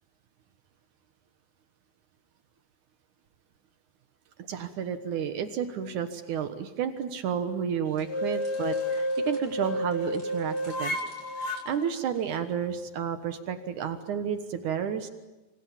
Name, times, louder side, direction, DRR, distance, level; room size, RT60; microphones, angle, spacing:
voice 1, 4.5-11.0 11.4-15.1, right 8 dB, 65° right, 9 dB, 2.0 m, -31 dB
sound 1, 7.9-12.7, right 1 dB, 25° right, 7.7 m, -56 dB
sound 2, 8.0-11.6, left 1 dB, 50° left, 1.7 m, -30 dB
27.5 x 27.0 x 7.3 m, 1.1 s
omnidirectional pair, 5.2 m